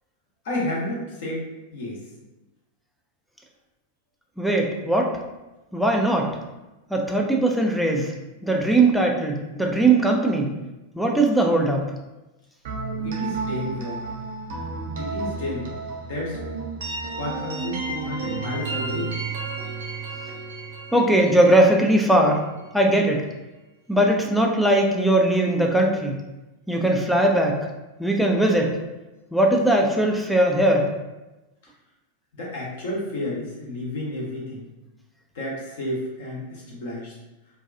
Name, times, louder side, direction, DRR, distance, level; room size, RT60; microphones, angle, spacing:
voice 1, 0.4-1.4 1.7-2.0 13.0-14.0 14.9-16.4 17.2-19.2 32.3-34.7 35.3-37.1, left 1 dB, 55° left, -4 dB, 0.9 m, -31 dB
voice 2, 4.4-5.1 5.7-6.3 6.9-8.1 8.4-10.5 11.0-11.9 20.9-22.4 22.7-23.3 23.9-26.2 26.7-27.6 28.0-28.8 29.3-30.9, right 1 dB, ahead, 0 dB, 0.4 m, -20 dB
sound 1, 12.6-22.4, right 4 dB, 55° right, 0.5 m, -32 dB
2.7 x 2.2 x 2.4 m, 1.0 s
figure-of-eight pair, 90°, 0 cm